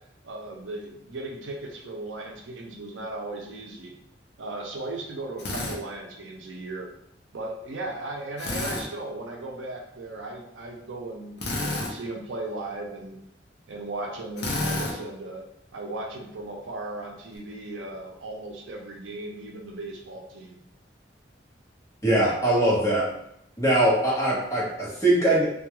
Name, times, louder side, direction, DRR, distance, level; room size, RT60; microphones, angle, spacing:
voice 1, 0.2-3.9 4.4-6.9 7.3-13.2 13.7-15.4 15.7-20.6, right 2 dB, 85° right, 0 dB, 0.5 m, -37 dB
Drill, 5.4-5.8 8.4-8.9 11.4-11.9 14.4-14.9, left 2 dB, 60° left, 0.5 m, -29 dB
voice 2, 22.0-23.0 23.6-25.4, right 1 dB, 15° left, -8 dB, 0.9 m, -21 dB
2.2 x 2.2 x 2.9 m, 0.77 s
head